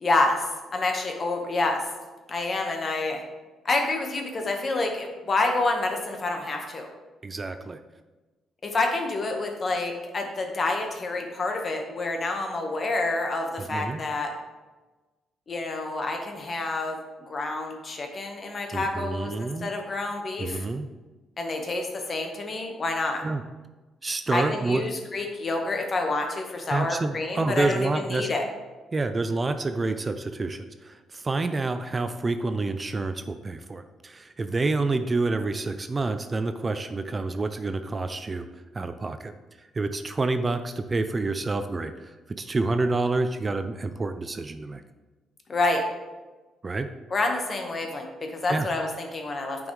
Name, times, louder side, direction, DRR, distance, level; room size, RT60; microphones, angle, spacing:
voice 1, 0.0-1.8 2.3-3.2 3.6-6.9 8.6-14.3 15.5-17.0 17.3-20.6 21.4-23.2 24.3-28.4 45.5-45.8 47.1-49.7, left 2 dB, 40° left, 3 dB, 1.3 m, -28 dB
voice 2, 7.2-7.8 13.6-14.0 18.7-19.7 20.4-20.9 23.2-23.4 24.0-24.9 26.7-28.3 28.9-38.5 38.7-44.8 46.6-46.9 48.5-48.7, right 3 dB, 30° right, 9 dB, 0.4 m, -28 dB
9.3 x 5.3 x 3.2 m, 1.2 s
cardioid pair, 90°, 0 cm